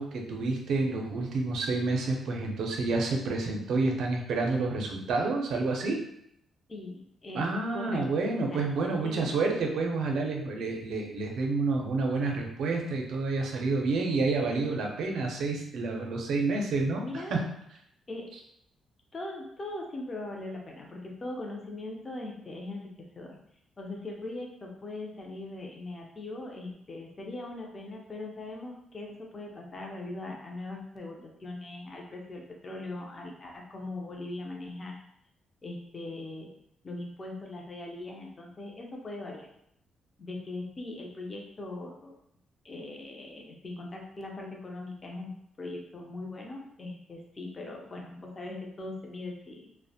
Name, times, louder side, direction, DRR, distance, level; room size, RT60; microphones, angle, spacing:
voice 1, 0.0-6.0 7.3-17.4, right 3 dB, 70° right, 2 dB, 0.5 m, -29 dB
voice 2, 6.7-8.0 8.5-9.3 17.0-17.3 18.1-18.3 19.1-23.4 23.8-34.9 35.6-36.5 36.8-39.5 40.2-42.1 42.6-49.7, left 2 dB, 25° left, 0 dB, 0.4 m, -40 dB
2.4 x 2.1 x 2.6 m, 0.73 s
cardioid pair, 155°, 0 cm